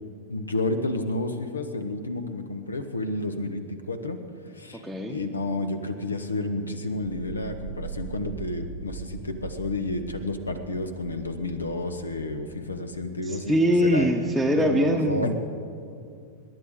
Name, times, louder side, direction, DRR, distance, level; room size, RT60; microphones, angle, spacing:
voice 1, 0.3-4.2 4.5-4.8 5.1-14.1 14.5-15.3, left 2 dB, 75° left, 9 dB, 1.1 m, -30 dB
voice 2, 4.8-5.2 13.3-15.3, equal, ahead, -2 dB, 1.0 m, -23 dB
sound 1, 7.2-13.0, right 7 dB, 55° right, 0.7 m, -41 dB
27.0 x 11.0 x 3.7 m, 2.4 s
figure-of-eight pair, 90°, 0 cm